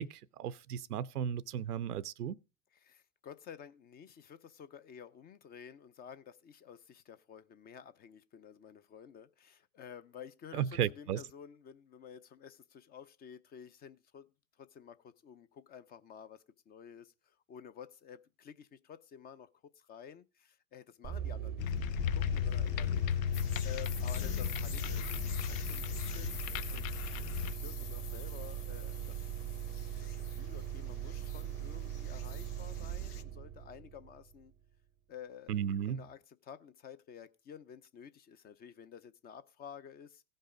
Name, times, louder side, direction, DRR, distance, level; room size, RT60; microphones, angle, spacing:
voice 1, 0.0-2.4 10.5-11.2 35.5-36.0, right 9 dB, 90° right, 0.7 m, -35 dB
voice 2, 2.7-14.3 14.6-26.4 26.7-26.9 27.2-29.5 30.0-34.5 35.1-35.6 35.9-40.2, left 8 dB, 20° left, 0.4 m, -52 dB
sound 1, 21.0-34.5, right 10 dB, 20° right, 0.6 m, -41 dB
sound 2, 21.6-28.1, left 10 dB, 65° left, 0.8 m, -35 dB
sound 3, 23.3-33.2, left 8 dB, 90° left, 1.1 m, -48 dB
16.0 x 5.5 x 4.9 m
hypercardioid pair, 110°, 44 cm